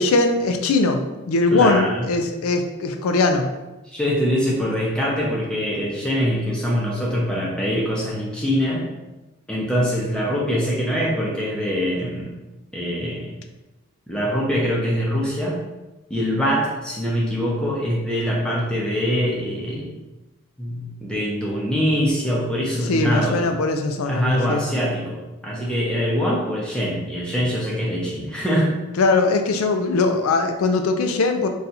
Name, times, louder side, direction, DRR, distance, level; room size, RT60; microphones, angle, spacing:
voice 1, 0.0-3.5 22.9-24.6 29.0-31.5, left 3 dB, 85° left, 6 dB, 0.4 m, -20 dB
voice 2, 1.5-2.0 3.9-8.8 9.5-12.3 12.7-13.3 14.1-15.5 16.1-19.9 20.6-23.4 24.1-28.7, equal, 5° left, -5 dB, 0.6 m, -23 dB
2.7 x 2.3 x 4.0 m, 1.1 s
head